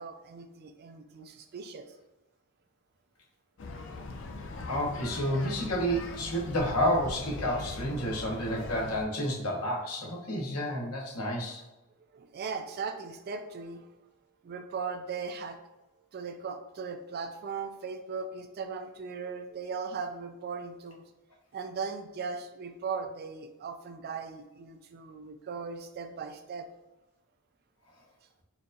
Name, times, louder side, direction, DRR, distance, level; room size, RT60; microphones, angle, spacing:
voice 1, 0.0-2.0 12.1-13.9 14.4-15.6 16.1-21.0 21.5-26.7, right 5 dB, 45° right, 7 dB, 0.3 m, -38 dB
sound 1, 3.6-9.1, left 3 dB, 60° left, 0.4 m, -40 dB
voice 2, 4.7-11.6, equal, 85° left, -2 dB, 1.0 m, -30 dB
4.4 x 2.6 x 2.5 m, 1.0 s
head